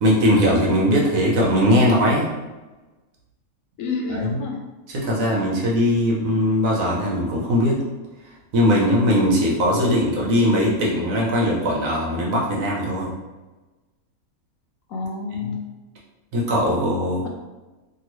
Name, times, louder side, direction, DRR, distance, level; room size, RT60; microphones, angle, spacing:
voice 1, 0.0-2.3 4.1-4.4 4.9-7.8 8.5-13.1 16.3-17.2, equal, 70° right, -4 dB, 1.2 m, -20 dB
voice 2, 3.8-4.6 14.9-15.7, left 4 dB, 70° left, 1 dB, 0.9 m, -29 dB
2.9 x 2.6 x 3.0 m, 1.2 s
omnidirectional pair, 1.5 m